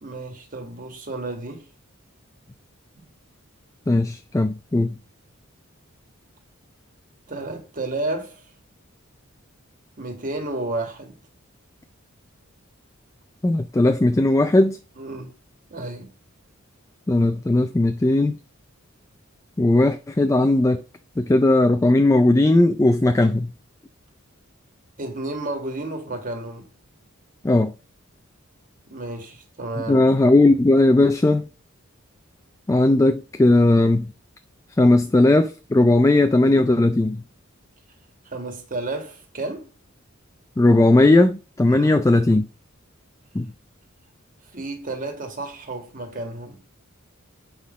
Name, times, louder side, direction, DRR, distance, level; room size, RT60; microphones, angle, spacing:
voice 1, 0.0-1.7 2.9-3.1 7.3-8.5 10.0-11.1 15.0-15.3 15.7-16.1 25.0-26.7 28.9-30.1 38.3-39.7 41.6-41.9 44.5-46.6, right 2 dB, 40° right, 1.9 m, -31 dB
voice 2, 3.9-5.0 13.4-14.8 17.1-18.4 19.6-20.8 21.2-23.5 27.4-27.7 29.9-31.5 32.7-34.1 34.8-37.2 40.6-42.5 43.3-43.5, left 2 dB, 15° left, 0.4 m, -17 dB
8.3 x 3.8 x 5.3 m
head